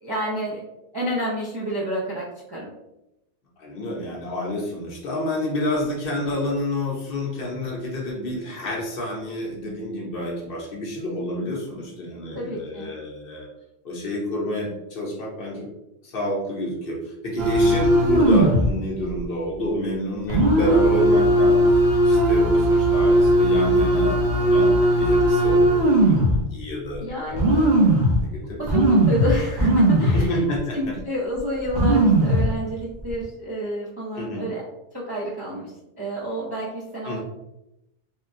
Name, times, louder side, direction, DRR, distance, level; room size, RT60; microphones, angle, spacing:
voice 1, 0.0-0.6 0.9-2.7 12.3-12.9 17.4-17.8 27.0-27.7 28.6-30.5 30.7-34.6 34.9-37.2, equal, 35° right, -6 dB, 0.4 m, -29 dB
voice 2, 3.6-13.5 13.8-15.7 16.0-21.8 22.0-28.6 30.1-30.9 34.2-34.5 37.0-37.2, left 1 dB, 55° left, -3 dB, 0.9 m, -29 dB
sound 1, 17.4-18.7 19.1-19.2 20.3-26.4 27.0-27.1 27.4-28.2 28.7-30.2 30.6-30.7 31.4-31.5 31.7-32.5 33.0-33.2, right 1 dB, 65° right, 0.8 m, -18 dB
3.5 x 2.2 x 2.5 m, 0.88 s
omnidirectional pair, 1.2 m